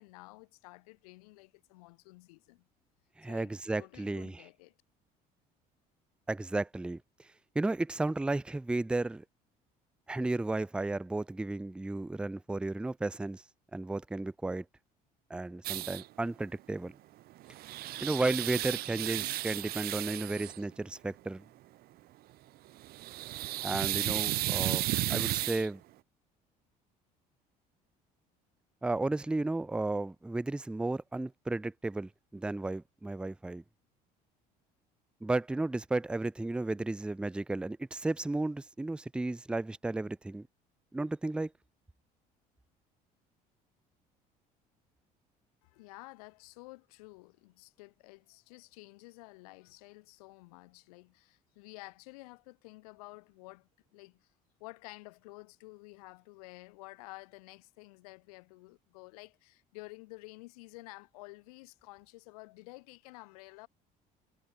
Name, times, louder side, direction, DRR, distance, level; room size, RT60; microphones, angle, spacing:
voice 1, 0.0-2.7 3.2-4.7 45.6-54.3 54.6-63.7, left 24 dB, 90° left, 1.8 m, -51 dB
voice 2, 3.2-4.4 6.3-7.0 7.6-9.2 10.1-13.4 13.7-14.6 15.3-16.9 18.0-21.4 23.6-25.8 28.8-33.6 35.2-40.5 40.9-41.5, right 2 dB, 5° right, 0.4 m, -33 dB
sound 1, 15.6-16.0 17.3-20.6 22.8-25.7, right 16 dB, 60° right, 0.5 m, -34 dB
supercardioid pair, 75°, 18 cm